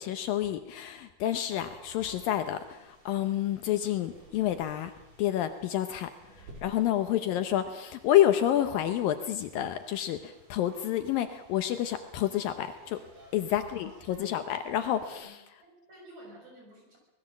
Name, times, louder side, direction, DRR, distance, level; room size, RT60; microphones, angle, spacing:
voice 1, 0.0-4.9 5.2-6.1 6.6-13.0 13.3-15.4, left 12 dB, 75° left, 9 dB, 2.4 m, -29 dB
sound 1, 1.3-15.2, right 2 dB, 60° right, 7.0 m, -55 dB
voice 2, 13.6-14.5 15.1-17.0, equal, 45° right, 1 dB, 7.9 m, -53 dB
25.0 x 19.5 x 7.4 m, 1.0 s
omnidirectional pair, 4.5 m